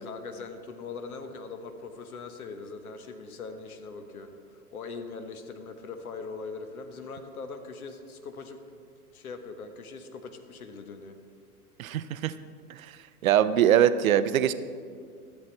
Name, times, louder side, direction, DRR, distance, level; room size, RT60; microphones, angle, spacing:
voice 1, 0.0-8.6 9.1-11.2, left 4 dB, 70° left, 7 dB, 1.1 m, -41 dB
voice 2, 11.8-12.3 12.7-12.9 13.2-14.5, right 10 dB, 65° right, 13 dB, 0.6 m, -22 dB
12.0 x 7.4 x 4.3 m, 2.2 s
figure-of-eight pair, 100°, 45 cm